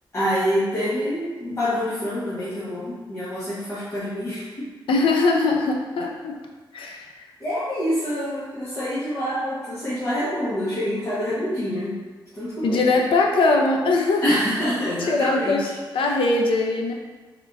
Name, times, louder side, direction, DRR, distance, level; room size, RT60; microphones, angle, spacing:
voice 1, 0.1-4.7 7.4-12.0 12.3-12.9 14.2-15.6, equal, 35° left, -12 dB, 0.9 m, -26 dB
voice 2, 4.9-6.3 6.7-7.3 12.6-14.2 15.1-15.7 15.9-16.9, left 3 dB, 85° left, 0 dB, 0.5 m, -21 dB
3.6 x 3.4 x 2.3 m, 1.4 s
wide cardioid pair, 155°, 9 cm